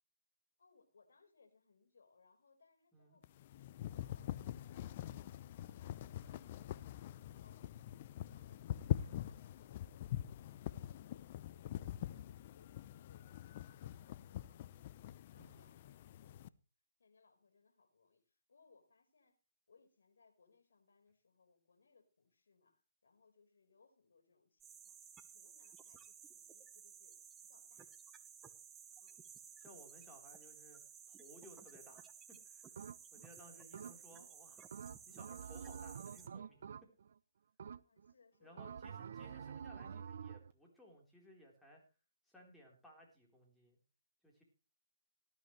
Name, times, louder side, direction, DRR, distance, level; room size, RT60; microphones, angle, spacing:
voice 1, 0.6-6.8 7.3-7.8 8.3-16.5 17.0-19.4 19.7-25.0 25.3-27.9 29.0-29.3 33.4-34.0 37.8-40.1, left 4 dB, 70° left, 4 dB, 4.6 m, -71 dB
sound 1, 3.2-16.5, left 12 dB, 40° left, 0.6 m, -44 dB
voice 2, 15.4-15.7 29.6-30.8 31.1-32.7 33.1-34.6 35.1-36.6 38.4-41.8 42.3-43.8 44.2-44.4, equal, ahead, -2 dB, 4.0 m, -61 dB
sound 2, 24.6-36.3, right 7 dB, 15° right, 1.1 m, -56 dB
sound 3, 32.8-33.3 33.7-34.3 34.7-37.2 37.6-38.1 38.6-40.5, right 7 dB, 55° right, 0.6 m, -48 dB
18.0 x 12.5 x 3.2 m, 0.34 s
figure-of-eight pair, 145°, 0 cm